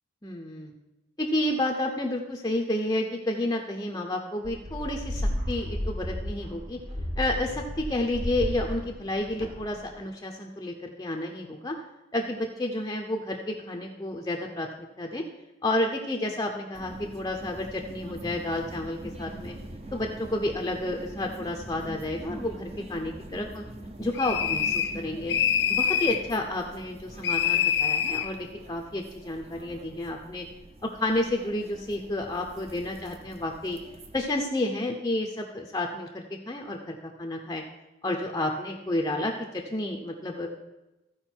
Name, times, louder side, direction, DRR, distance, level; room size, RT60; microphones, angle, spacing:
voice 1, 0.2-0.7 1.2-6.8 7.2-11.8 12.1-14.7 15.0-15.2 15.6-19.5 19.9-23.6 24.0-25.3 25.7-30.5 30.8-33.8 34.1-37.6 38.0-40.5, left 1 dB, 20° left, 2 dB, 0.6 m, -30 dB
sound 1, 4.4-9.9, equal, 45° right, 1.7 m, -33 dB
sound 2, 16.7-34.2, right 1 dB, 30° right, 0.7 m, -44 dB
sound 3, 24.2-25.0 25.3-26.2 27.2-28.3, left 8 dB, 60° left, 0.5 m, -25 dB
14.5 x 4.9 x 4.5 m, 1.0 s
head